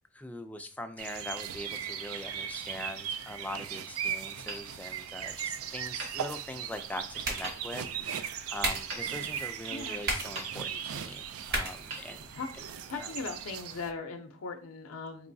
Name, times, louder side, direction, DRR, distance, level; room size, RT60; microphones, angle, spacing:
voice 1, 0.1-12.3 12.9-13.1, left 1 dB, 5° left, 6 dB, 0.3 m, -42 dB
sound 1, 1.0-13.9, right 8 dB, 80° right, 0.4 m, -38 dB
Hammer, 4.5-5.5 6.0-6.9 7.4-8.0 8.9-9.9 10.3-11.1 11.9-12.8, right 2 dB, 65° right, 1.5 m, -45 dB
sound 2, 6.7-12.7, right 1 dB, 50° right, 1.1 m, -38 dB
voice 2, 9.7-10.0 12.3-12.5 12.9-15.3, left 4 dB, 80° left, 5 dB, 0.5 m, -39 dB
4.6 x 3.0 x 2.6 m, 0.38 s
head